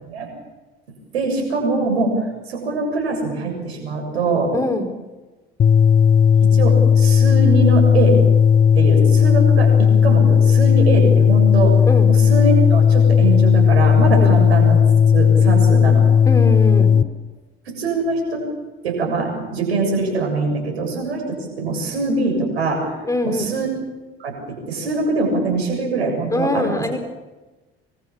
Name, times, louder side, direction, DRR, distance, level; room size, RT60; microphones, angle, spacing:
voice 1, 1.1-2.2 2.5-4.5 6.4-8.2 8.8-11.8 12.3-14.8 15.1-16.1 17.7-18.5 18.8-22.8 23.2-23.7 24.2-26.8, right 3 dB, 75° right, 3 dB, 7.2 m, -22 dB
voice 2, 4.5-4.9 11.8-12.1 14.2-14.3 16.2-16.9 23.0-23.5 26.3-27.0, left 1 dB, 10° left, 6 dB, 4.9 m, -23 dB
sound 1, 5.6-17.0, left 7 dB, 25° left, 0.8 m, -14 dB
25.0 x 24.5 x 7.3 m, 1.2 s
figure-of-eight pair, 60°, 32 cm